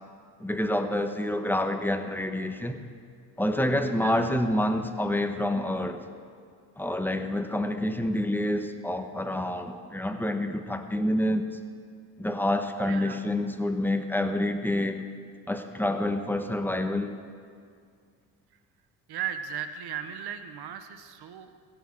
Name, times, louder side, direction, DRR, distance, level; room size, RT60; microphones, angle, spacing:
voice 1, 0.4-2.8 3.4-6.0 6.8-11.5 12.2-15.0 15.5-17.1, left 1 dB, 5° left, 7 dB, 1.0 m, -28 dB
voice 2, 12.8-13.3 19.1-21.5, right 9 dB, 55° right, 10 dB, 1.0 m, -36 dB
16.5 x 6.8 x 6.4 m, 2.2 s
supercardioid pair, 70°, 46 cm